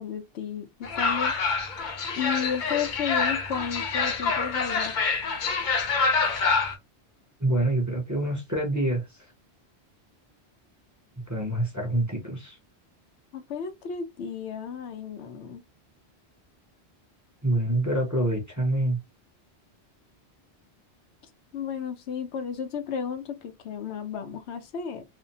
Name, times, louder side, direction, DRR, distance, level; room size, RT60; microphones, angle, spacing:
voice 1, 0.0-1.3 2.2-5.0 13.3-15.6 21.5-25.0, left 7 dB, 80° left, 0.9 m, -33 dB
sound 1, 0.8-6.8, left 4 dB, 55° left, 0.6 m, -26 dB
voice 2, 7.4-9.3 11.3-12.6 17.4-19.0, right 1 dB, 20° right, 0.7 m, -26 dB
2.6 x 2.0 x 2.8 m
omnidirectional pair, 1.1 m